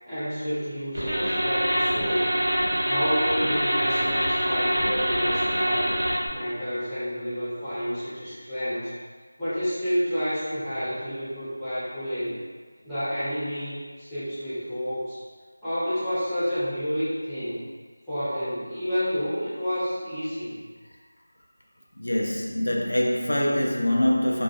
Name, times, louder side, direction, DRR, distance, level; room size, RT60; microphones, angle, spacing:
voice 1, 0.1-2.3 2.9-5.9 6.3-8.9 9.4-12.3 12.8-15.2 15.6-17.6 18.1-20.6, equal, ahead, -20 dB, 0.4 m, -29 dB
sound 1, 0.9-6.3, equal, 75° right, 1.0 m, -25 dB
voice 2, 21.9-24.4, left 1 dB, 85° left, -1 dB, 0.4 m, -24 dB
2.4 x 2.2 x 2.3 m, 1.5 s
figure-of-eight pair, 180°, 0 cm